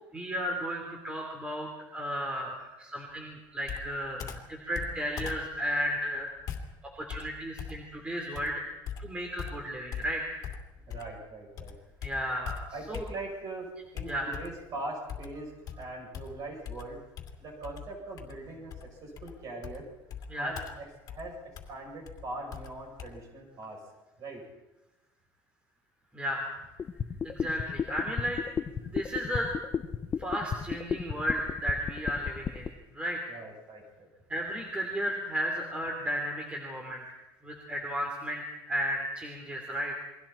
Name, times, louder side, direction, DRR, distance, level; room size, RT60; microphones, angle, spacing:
voice 1, 0.1-6.5 7.0-8.6 9.0-10.4 12.0-13.0 14.1-14.3 20.3-20.6 26.1-26.5 27.2-28.4 28.8-29.5 30.2-33.2 34.3-40.1, equal, 10° right, 0 dB, 3.0 m, -34 dB
Computer keyboard, 3.6-11.3 11.6-13.5 14.0-14.7 15.1-23.1, left 7 dB, 45° left, 2.6 m, -42 dB
voice 2, 10.9-11.7 12.7-17.0 17.4-18.7 19.0-19.9 20.4-21.4 21.7-23.8 24.2-24.4 33.3-34.1, right 2 dB, 40° right, 0 dB, 7.9 m, -41 dB
sound 1, 26.8-32.7, left 7 dB, 25° left, 0.8 m, -32 dB
29.0 x 22.5 x 4.5 m, 1.0 s
cardioid pair, 170°, 9 cm